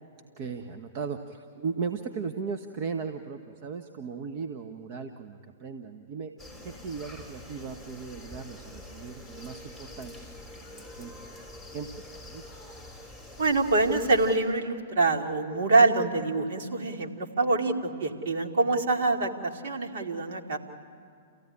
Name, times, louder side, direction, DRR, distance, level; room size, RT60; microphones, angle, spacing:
voice 1, 0.4-6.3 6.6-10.1 10.5-11.5 11.7-12.4, right 5 dB, 45° right, 7 dB, 1.2 m, -37 dB
sound 1, 6.4-14.4, left 1 dB, 10° right, 5.1 m, -46 dB
voice 2, 13.4-20.6, right 3 dB, 60° right, 3 dB, 2.5 m, -25 dB
29.5 x 15.0 x 9.9 m, 2.3 s
figure-of-eight pair, 110°, 0 cm